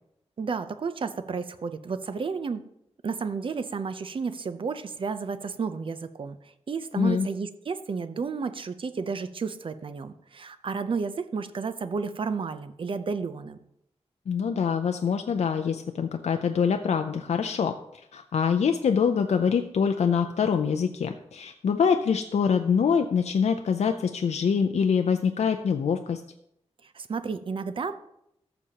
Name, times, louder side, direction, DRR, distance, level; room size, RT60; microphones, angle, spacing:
voice 1, 0.4-2.6 3.0-6.4 6.7-13.6 26.8-28.0, right 5 dB, 50° right, 11 dB, 0.5 m, -32 dB
voice 2, 6.9-7.3 14.3-17.7 18.1-26.2, left 6 dB, 75° left, 6 dB, 0.5 m, -24 dB
14.0 x 6.9 x 2.9 m, 0.78 s
wide cardioid pair, 150°, 11 cm